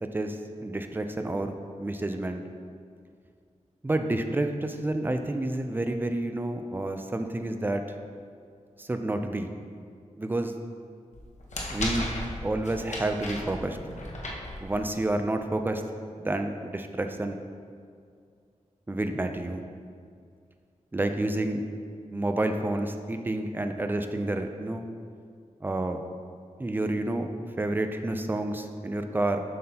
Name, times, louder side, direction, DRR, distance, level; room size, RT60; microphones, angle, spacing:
voice 1, 0.0-2.4 3.8-7.8 8.8-9.5 10.2-10.5 11.7-12.1 12.4-13.8 14.6-15.8 16.2-17.4 18.9-19.6 20.9-21.7 22.1-24.8 25.6-26.0 26.6-27.3 27.6-29.4, right 1 dB, 15° right, 6 dB, 0.4 m, -29 dB
sound 1, 11.1-15.1, left 1 dB, 70° left, 1.0 m, -35 dB
7.6 x 5.7 x 2.9 m, 2.2 s
wide cardioid pair, 100°, 12 cm